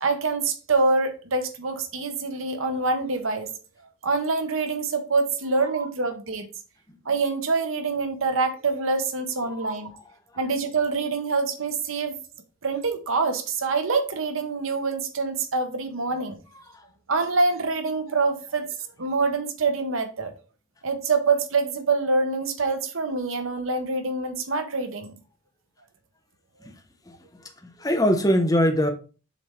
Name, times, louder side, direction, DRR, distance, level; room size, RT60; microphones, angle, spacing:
voice 1, 0.0-3.5 4.0-6.5 7.0-9.9 10.4-12.2 12.6-16.4 17.1-18.7 19.0-20.3 20.8-25.1, right 3 dB, 80° right, 1.0 m, -25 dB
voice 2, 27.6-28.9, equal, 20° left, 0.9 m, -22 dB
7.0 x 3.4 x 4.4 m
head